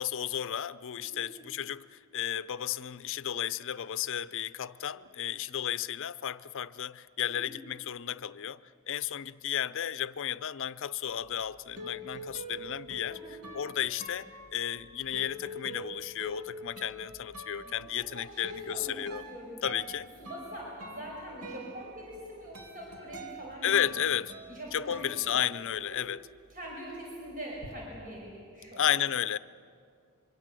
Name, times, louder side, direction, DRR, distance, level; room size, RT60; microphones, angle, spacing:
voice 1, 0.0-8.6 8.9-13.2 13.5-19.2 19.6-20.1 23.6-24.4 24.7-26.3 28.8-29.4, left 10 dB, 60° left, 0.6 m, -33 dB
voice 2, 1.0-1.3 7.2-7.5 13.1-13.4 17.6-18.9 19.3-19.6 20.2-23.8 24.5-25.4 25.8-26.0 26.5-29.0, equal, 40° right, 5.5 m, -44 dB
sound 1, 11.2-26.0 26.3-27.7, equal, 80° right, 2.7 m, -45 dB
25.5 x 24.0 x 7.6 m
head